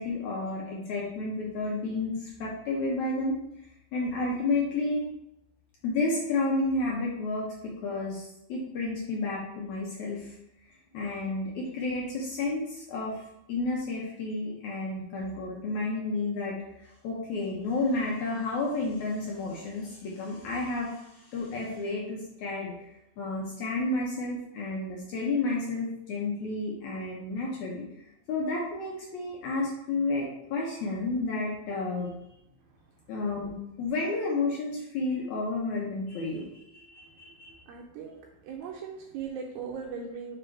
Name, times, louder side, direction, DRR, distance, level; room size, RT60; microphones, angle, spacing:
voice 1, 0.0-3.4 3.9-5.1 5.8-10.3 10.9-13.2 13.5-16.5 17.0-27.9 28.3-32.1 33.1-37.6, left 2 dB, 85° left, -3 dB, 1.6 m, -31 dB
voice 2, 37.7-40.4, right 6 dB, 80° right, -1 dB, 2.3 m, -39 dB
5.5 x 3.9 x 4.5 m, 0.83 s
omnidirectional pair, 4.6 m